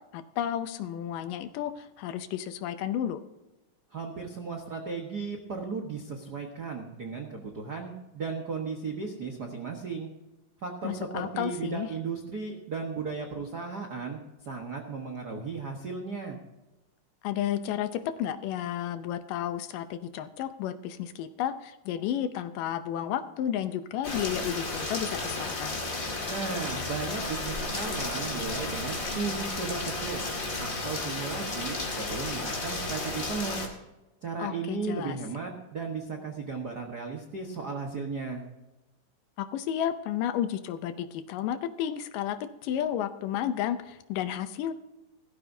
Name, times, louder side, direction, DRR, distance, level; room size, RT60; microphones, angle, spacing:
voice 1, 0.1-3.2 10.8-11.9 17.2-25.8 34.4-35.2 39.4-44.7, left 10 dB, 80° left, 10 dB, 2.3 m, -32 dB
voice 2, 3.9-10.1 10.6-16.4 26.3-30.3 30.6-33.6 34.2-38.4, right 4 dB, 65° right, 2 dB, 0.9 m, -35 dB
Rain, 24.0-33.7, left 2 dB, 30° left, 2.0 m, -33 dB
17.0 x 14.0 x 2.7 m, 1.0 s
omnidirectional pair, 4.0 m